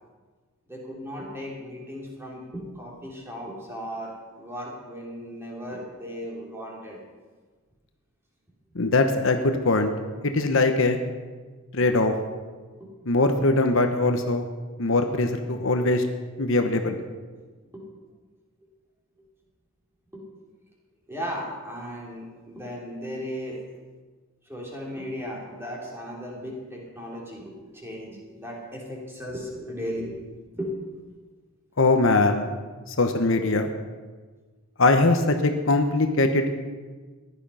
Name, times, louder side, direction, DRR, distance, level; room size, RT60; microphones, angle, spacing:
voice 1, 0.7-7.0 12.8-12.9 17.7-17.8 20.1-20.2 21.1-23.6 24.5-30.2 30.5-30.7, equal, 10° right, -3 dB, 3.2 m, -36 dB
voice 2, 8.7-9.9 10.2-11.0 11.7-12.1 13.1-14.4 14.8-16.0 16.4-17.0 31.8-32.5 33.0-33.7 34.8-36.5, left 2 dB, 60° left, 6 dB, 1.0 m, -21 dB
15.5 x 11.5 x 5.6 m, 1.4 s
head